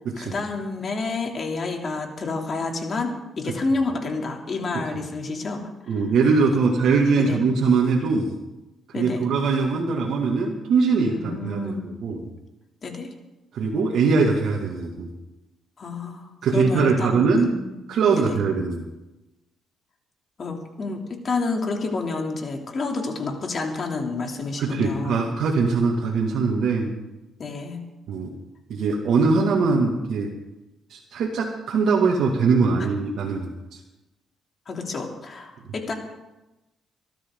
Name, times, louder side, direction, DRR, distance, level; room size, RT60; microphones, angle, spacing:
voice 1, 0.2-6.0 7.1-7.4 8.9-9.3 11.1-11.8 12.8-13.1 15.8-17.7 18.1-18.4 20.4-25.2 27.4-27.8 32.8-32.9 34.7-35.9, left 3 dB, 45° left, 2 dB, 3.1 m, -29 dB
voice 2, 5.9-8.3 9.0-12.3 13.5-15.1 16.4-17.5 17.9-18.8 24.6-26.9 28.1-28.3 28.7-30.3 30.9-33.8 35.7-35.8, right 4 dB, 70° right, -2 dB, 2.3 m, -22 dB
23.5 x 13.0 x 3.9 m, 1.0 s
cardioid pair, 90°, 0 cm